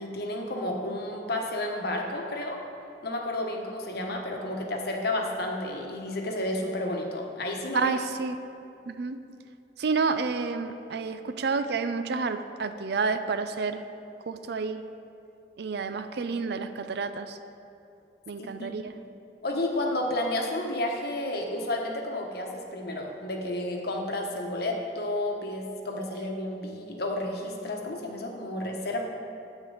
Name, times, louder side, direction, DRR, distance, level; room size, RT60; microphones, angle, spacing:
voice 1, 0.0-2.6 3.0-7.9 18.6-18.7 19.4-29.0, left 1 dB, 60° left, 1 dB, 1.1 m, -31 dB
voice 2, 7.7-8.4 8.9-9.2 9.8-13.8 14.2-14.8 15.6-17.4 18.3-18.9, right 4 dB, 65° right, 10 dB, 0.5 m, -29 dB
9.8 x 8.3 x 3.9 m, 2.6 s
head